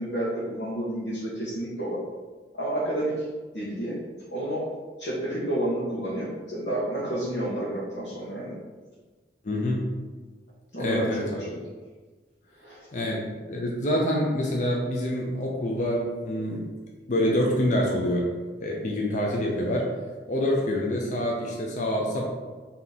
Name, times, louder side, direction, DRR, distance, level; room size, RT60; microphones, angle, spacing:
voice 1, 0.0-2.0 2.5-3.2 3.5-4.0 4.3-4.7 5.0-8.5 10.7-11.5 12.6-12.9, right 1 dB, 85° left, -9 dB, 1.1 m, -30 dB
voice 2, 9.4-10.0 10.8-11.4 12.9-16.6 17.1-18.2 18.6-19.9 20.3-22.2, left 1 dB, 45° left, -2 dB, 0.5 m, -26 dB
3.6 x 2.8 x 4.0 m, 1.3 s
head